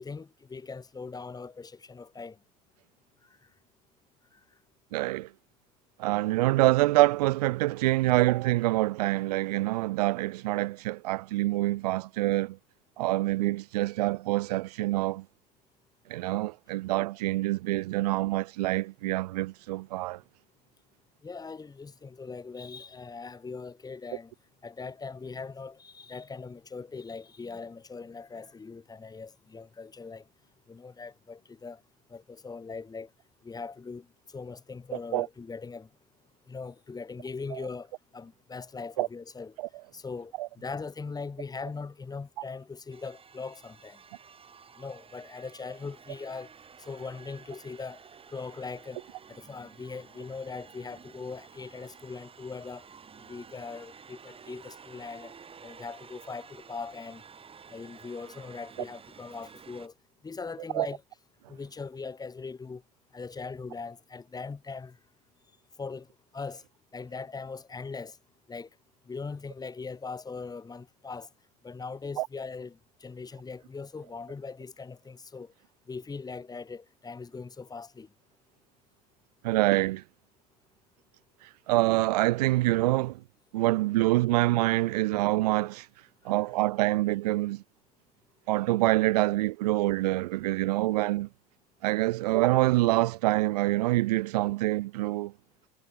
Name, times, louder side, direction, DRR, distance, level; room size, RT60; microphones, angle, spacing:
voice 1, 0.0-2.4 21.2-24.3 24.6-30.2 30.7-31.8 32.1-33.1 33.4-35.9 36.5-39.6 39.9-44.0 44.8-46.5 46.9-48.0 48.3-49.0 49.3-52.8 53.3-55.3 55.6-57.2 57.7-59.9 60.2-61.0 61.5-62.8 63.1-65.0 65.8-66.1 66.3-66.6 66.9-68.2 68.5-68.7 69.1-71.3 71.6-75.5 75.9-78.1, left 4 dB, 20° left, 2.5 m, -40 dB
voice 2, 4.9-5.3 6.0-12.6 13.0-15.2 16.1-20.2 35.1-35.3 37.5-37.6 39.0-39.1 40.4-40.5 60.7-60.9 72.2-72.3 79.4-80.0 81.7-83.2 83.5-85.9 86.2-87.6 88.5-91.3 91.8-95.3, right 18 dB, 75° right, 0.6 m, -26 dB
sound 1, 42.9-59.9, right 6 dB, 25° right, 3.7 m, -52 dB
hypercardioid pair, 80°, 20 cm